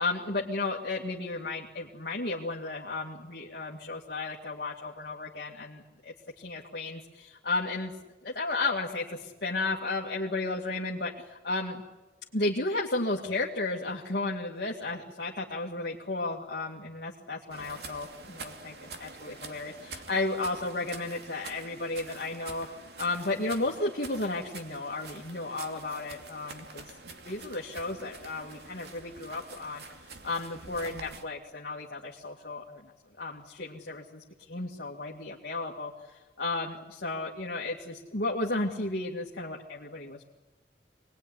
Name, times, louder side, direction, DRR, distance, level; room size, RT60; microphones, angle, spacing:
voice 1, 0.0-7.9 8.2-11.8 12.3-22.7 23.0-29.8 30.2-32.9 33.2-35.9 36.4-40.3, left 2 dB, 60° left, -2 dB, 2.2 m, -33 dB
sound 1, 17.5-31.2, right 3 dB, 65° right, 2.7 m, -46 dB
26.0 x 20.5 x 10.0 m, 1.1 s
head